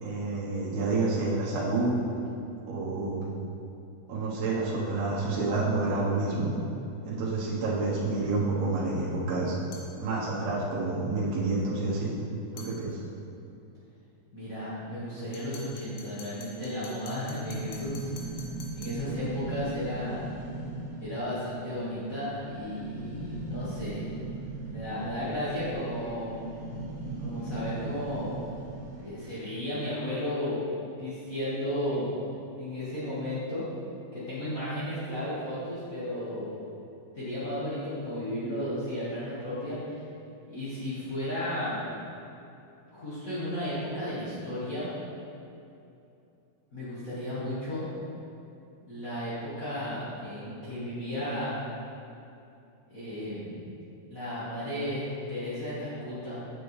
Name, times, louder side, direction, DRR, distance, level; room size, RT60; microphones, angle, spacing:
voice 1, 0.0-2.0 2.7-3.3 4.1-6.5 7.1-9.6 10.0-12.1 12.5-13.0, right 3 dB, 85° right, -6 dB, 3.2 m, -29 dB
sound 1, 9.7-10.0 12.6-12.8 15.3-19.1, left 3 dB, 85° left, 3.0 m, -47 dB
voice 2, 14.3-18.1 18.7-20.3 21.0-24.1 24.7-26.4 27.2-28.4 29.0-30.7 31.0-32.1 32.6-33.6 34.1-36.6 37.1-40.0 40.5-41.8 42.9-44.9 46.7-47.9 48.9-51.7 52.9-53.6 54.1-56.4, left 1 dB, 60° left, -12 dB, 0.8 m, -34 dB
sound 2, 17.4-29.4, right 2 dB, 55° right, 2.3 m, -39 dB
9.0 x 7.0 x 3.2 m, 2.8 s
omnidirectional pair, 4.4 m